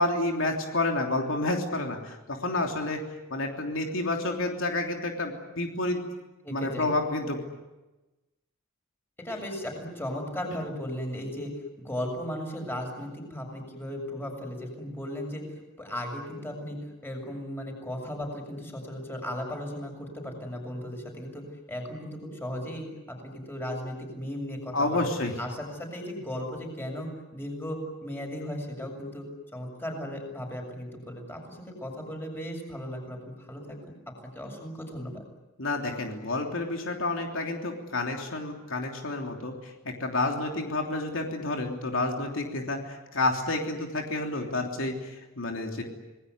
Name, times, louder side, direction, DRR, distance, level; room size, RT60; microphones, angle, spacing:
voice 1, 0.0-3.0 3.3-6.0 6.5-7.4 24.7-25.3 35.6-45.8, left 2 dB, 75° left, 2 dB, 3.3 m, -29 dB
voice 2, 6.4-6.9 9.2-21.4 21.7-25.1 25.4-29.3 29.5-33.8 34.3-35.2, equal, 10° left, 2 dB, 6.9 m, -36 dB
27.0 x 20.0 x 9.5 m, 1.1 s
head